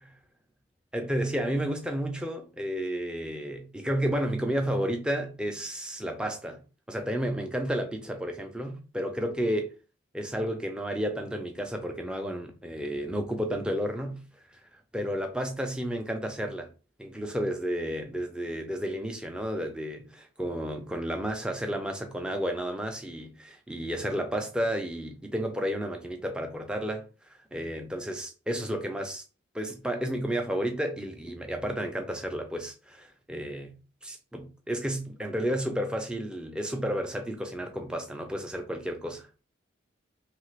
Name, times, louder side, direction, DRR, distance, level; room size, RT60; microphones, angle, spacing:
voice 1, 0.9-6.6 6.9-9.7 10.1-14.2 14.5-14.6 14.9-16.7 17.0-27.1 27.5-29.2 29.5-33.7 34.0-39.3, equal, 5° right, 0.4 m, -32 dB
2.8 x 2.4 x 3.1 m
head